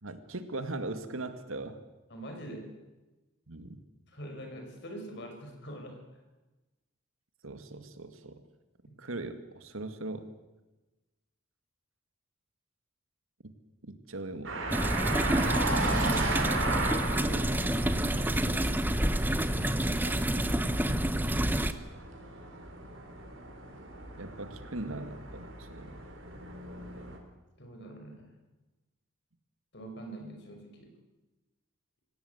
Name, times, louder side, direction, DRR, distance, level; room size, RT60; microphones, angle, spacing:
voice 1, 0.0-1.8 3.5-3.8 7.4-8.4 9.0-10.3 13.8-14.6 24.2-26.0, right 2 dB, 80° right, 9 dB, 2.1 m, -39 dB
voice 2, 2.1-2.7 4.1-6.0 8.9-9.0 15.0-17.5 27.6-28.3 29.7-30.9, right 1 dB, 55° left, 3 dB, 5.6 m, -44 dB
sound 1, 14.4-27.2, right 2 dB, 65° right, 4.2 m, -36 dB
sound 2, 14.7-21.7, right 1 dB, 10° right, 0.9 m, -28 dB
26.5 x 17.0 x 8.1 m, 1.1 s
head